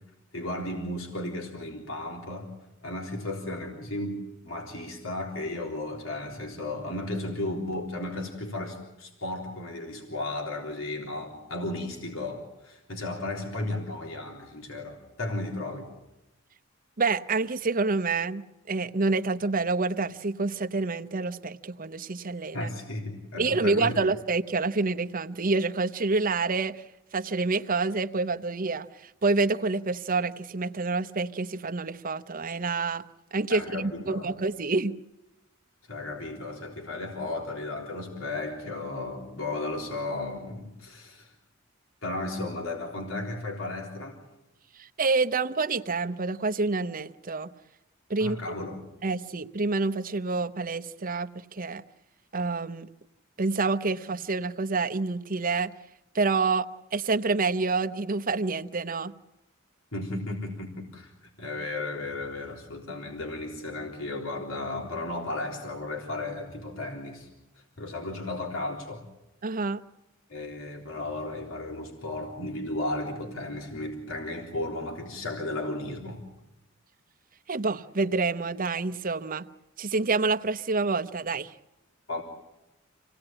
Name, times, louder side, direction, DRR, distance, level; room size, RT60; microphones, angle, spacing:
voice 1, 0.3-2.5 2.8-15.9 22.5-24.1 33.5-34.3 35.9-41.3 42.0-44.2 48.2-48.8 59.9-67.3 67.8-69.0 70.3-76.2 82.1-82.2, left 2 dB, 75° left, 1 dB, 3.7 m, -34 dB
voice 2, 17.0-22.7 23.4-26.8 27.1-33.0 33.3-35.0 44.8-47.5 48.1-48.4 49.0-51.8 52.3-52.9 53.4-55.7 56.1-59.1 69.4-69.8 77.5-79.4 79.8-81.5, right 3 dB, 45° right, 9 dB, 0.8 m, -27 dB
27.5 x 17.5 x 8.9 m, 0.95 s
head